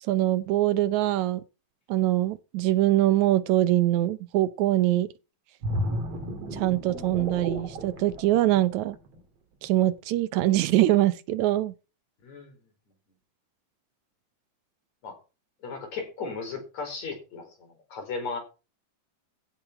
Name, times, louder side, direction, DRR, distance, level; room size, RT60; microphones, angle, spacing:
voice 1, 0.1-1.4 1.9-5.1 6.5-9.0 9.6-11.7, right 15 dB, 80° right, 2.1 m, -23 dB
sound 1, 5.6-9.2 9.6-9.9, equal, 55° right, 3.5 m, -33 dB
voice 2, 12.2-12.6 15.0-15.2 15.6-18.4, left 4 dB, 70° left, 5.9 m, -36 dB
15.5 x 7.5 x 6.0 m
omnidirectional pair, 3.4 m